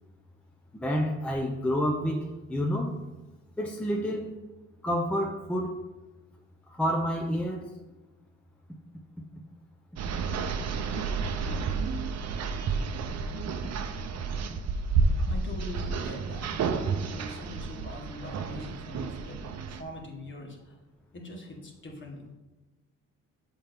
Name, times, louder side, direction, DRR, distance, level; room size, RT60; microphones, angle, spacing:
voice 1, 0.7-2.9 3.6-4.3 4.8-5.7 6.8-7.6, equal, 5° left, 0 dB, 0.6 m, -29 dB
sound 1, 10.0-19.8, right 4 dB, 60° right, 0.7 m, -31 dB
voice 2, 15.3-16.5 17.0-19.5 19.8-20.6 21.1-22.3, left 1 dB, 40° left, 1 dB, 1.5 m, -42 dB
7.2 x 4.4 x 3.6 m, 1.1 s
cardioid pair, 90°, 30 cm